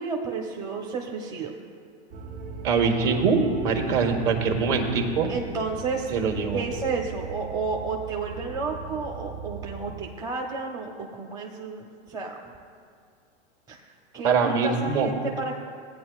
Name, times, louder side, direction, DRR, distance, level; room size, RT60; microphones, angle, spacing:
voice 1, 0.0-1.5 5.3-6.1 6.5-12.5 13.7-13.8 14.1-15.5, right 4 dB, 10° right, 0 dB, 0.7 m, -31 dB
sound 1, 2.1-10.1, right 5 dB, 75° right, 1.7 m, -39 dB
voice 2, 2.6-5.3 6.1-6.6 14.2-15.1, right 5 dB, 50° right, 3 dB, 1.5 m, -23 dB
16.5 x 9.1 x 2.4 m, 2.3 s
hypercardioid pair, 125°, 34 cm